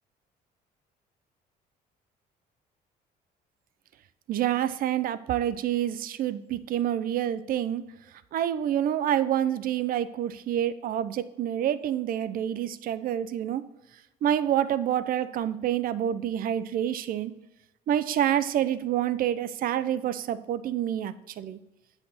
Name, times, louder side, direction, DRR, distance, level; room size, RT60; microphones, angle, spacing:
voice 1, 4.3-7.8 8.3-13.6 14.2-17.3 17.9-21.6, right 10 dB, 60° right, 14 dB, 0.6 m, -27 dB
8.4 x 5.7 x 4.1 m, 0.93 s
cardioid pair, 110°, 17 cm